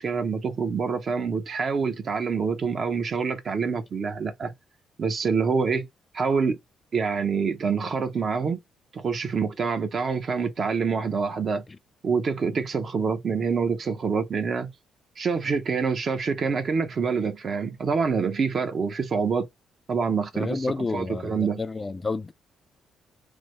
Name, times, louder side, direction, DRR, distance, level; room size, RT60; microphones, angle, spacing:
voice 1, 0.0-4.5 5.0-5.9 6.1-6.6 6.9-8.6 8.9-11.6 12.0-14.7 15.2-19.5 19.9-20.7 20.9-21.6, right 5 dB, 50° right, 0.6 m, -26 dB
voice 2, 20.3-22.3, left 3 dB, 25° left, 0.3 m, -30 dB
3.2 x 2.0 x 3.0 m
cardioid pair, 90°, 0 cm